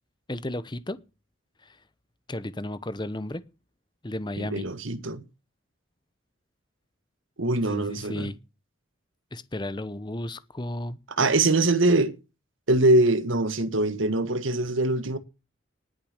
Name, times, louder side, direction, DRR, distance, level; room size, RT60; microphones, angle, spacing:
voice 1, 0.3-1.0 1.6-1.8 2.3-3.4 4.0-4.6 7.7-8.4 9.3-11.0, left 1 dB, 20° left, 0.9 m, -33 dB
voice 2, 4.4-5.2 7.4-8.3 11.2-12.1 12.7-15.2, right 2 dB, 80° right, 1.5 m, -23 dB
19.0 x 6.7 x 6.6 m
head